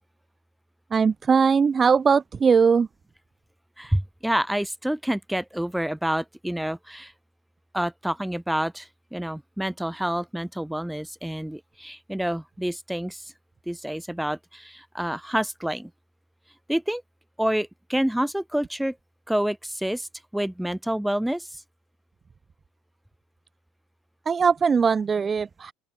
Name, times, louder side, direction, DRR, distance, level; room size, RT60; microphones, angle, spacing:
voice 1, 0.9-2.9 24.3-25.7, right 6 dB, 25° right, 0.6 m, -20 dB
voice 2, 3.8-7.1 7.7-13.2 13.7-15.9 16.7-17.0 17.4-18.9 19.3-20.1 20.3-21.5, right 1 dB, 5° right, 1.6 m, -28 dB
open air
supercardioid pair, 105°, 0 cm